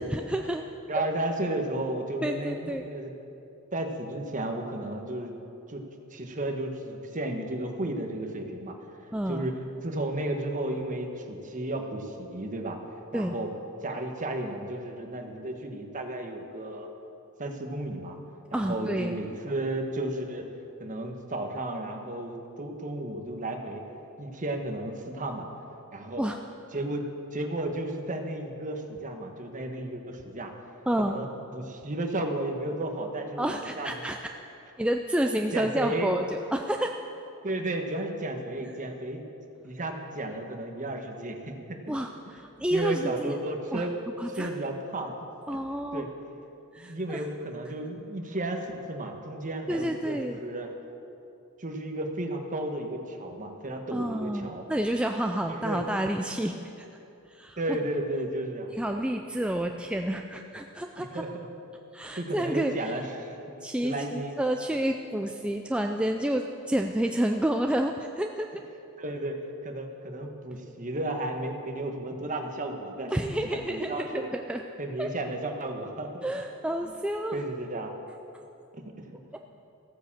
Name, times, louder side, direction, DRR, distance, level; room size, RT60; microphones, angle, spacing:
voice 1, 0.1-0.6 2.2-2.9 9.1-9.5 13.1-13.3 18.5-19.2 26.2-26.4 30.9-31.2 33.4-34.2 34.8-36.9 41.9-43.3 43.7-43.9 44.2-44.5 45.5-46.0 46.7-47.2 49.7-50.4 53.9-56.6 57.3-57.6 58.7-61.2 61.9-62.7 63.6-68.6 73.1-74.6 75.0-75.1 76.2-77.4, right 1 dB, 5° right, 3 dB, 0.4 m, -29 dB
voice 2, 0.9-3.1 3.7-5.3 5.7-5.8 6.1-8.8 9.3-12.8 13.1-13.5 13.8-16.9 17.4-18.2 18.5-20.4 20.8-23.8 24.2-25.5 25.9-26.2 26.7-27.1 27.3-30.5 31.0-31.3 31.5-34.0 35.5-36.1 37.4-39.2 39.6-42.0 42.6-43.9 44.4-45.6 45.9-46.1 46.8-50.7 51.6-54.7 55.5-55.8 57.6-58.7 61.0-61.5 62.1-63.4 63.8-64.4 69.0-74.3 74.8-76.4 76.8-76.9 77.3-77.9 78.7-79.1, right 1 dB, 35° right, 4 dB, 1.3 m, -33 dB
15.0 x 9.2 x 7.3 m, 2.8 s
head